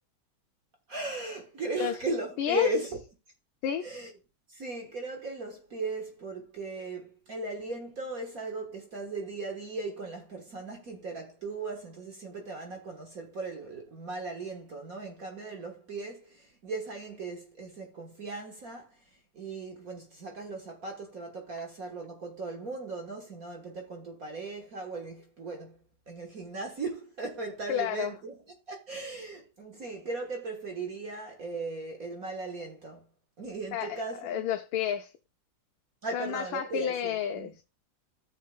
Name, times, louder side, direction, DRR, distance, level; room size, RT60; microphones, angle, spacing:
voice 1, 0.9-3.0 3.8-4.1 4.5-19.0 19.3-25.8 26.1-28.4 28.7-33.0 33.4-34.5 36.0-37.5, right 2 dB, 45° right, 1.6 m, -37 dB
voice 2, 2.4-2.7 3.6-3.9 27.7-28.1 33.7-35.1 36.1-37.6, left 9 dB, 80° left, 1.4 m, -31 dB
13.5 x 6.6 x 2.3 m
omnidirectional pair, 2.2 m